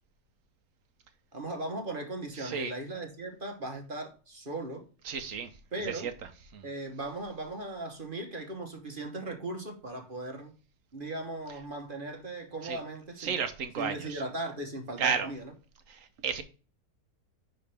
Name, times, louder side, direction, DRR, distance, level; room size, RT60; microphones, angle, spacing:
voice 1, 1.3-4.8 5.7-6.1 6.6-10.5 10.9-13.3 13.8-15.5, right 2 dB, 35° right, 1.1 m, -38 dB
voice 2, 5.1-5.5 5.8-6.1 6.5-6.7 12.6-12.8 13.2-14.2 15.0-15.3 15.9-16.4, right 6 dB, 60° right, 1.0 m, -32 dB
10.0 x 3.9 x 3.4 m
omnidirectional pair, 1.8 m